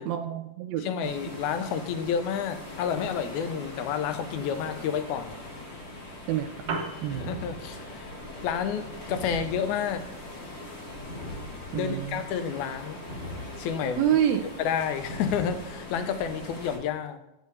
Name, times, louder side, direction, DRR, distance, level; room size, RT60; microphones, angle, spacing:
voice 1, 0.0-0.9 6.3-6.7 7.0-7.4 11.7-12.2 14.0-14.5, right 10 dB, 80° right, 7 dB, 1.6 m, -27 dB
voice 2, 0.8-5.3 7.2-8.1 8.4-10.0 11.7-13.0 13.6-14.0 14.6-17.2, left 7 dB, 80° left, 9 dB, 2.0 m, -30 dB
sound 1, 1.0-16.8, left 1 dB, 40° left, 0.9 m, -42 dB
Piano, 6.4-15.4, right 3 dB, 60° right, 1.6 m, -44 dB
sound 2, 7.0-8.1 9.0-10.1 11.0-12.1 13.0-14.0 15.0-16.0, left 1 dB, 60° left, 2.9 m, -41 dB
8.4 x 7.8 x 3.2 m, 0.91 s
omnidirectional pair, 3.4 m